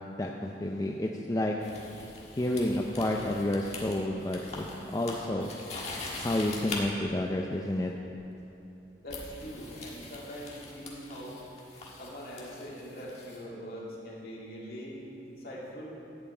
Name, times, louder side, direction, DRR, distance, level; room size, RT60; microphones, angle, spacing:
voice 1, 0.2-1.6 2.4-5.5 6.2-7.9, left 1 dB, 20° left, 1 dB, 0.5 m, -30 dB
sound 1, 1.6-6.8 8.1-8.3 9.1-13.4, left 3 dB, 35° left, 1.5 m, -43 dB
voice 2, 9.0-11.4 12.0-15.9, equal, 55° left, -5 dB, 2.4 m, -42 dB
11.0 x 5.6 x 8.4 m, 2.9 s
head